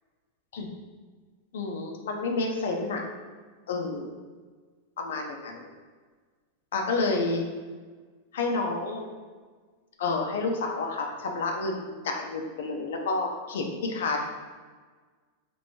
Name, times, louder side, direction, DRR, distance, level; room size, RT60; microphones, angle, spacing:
voice 1, 1.5-3.1 3.7-4.1 5.0-5.7 6.7-7.4 8.3-9.1 10.0-14.3, left 3 dB, 85° left, 1 dB, 0.6 m, -29 dB
2.9 x 2.6 x 4.3 m, 1.5 s
supercardioid pair, 145°, 0 cm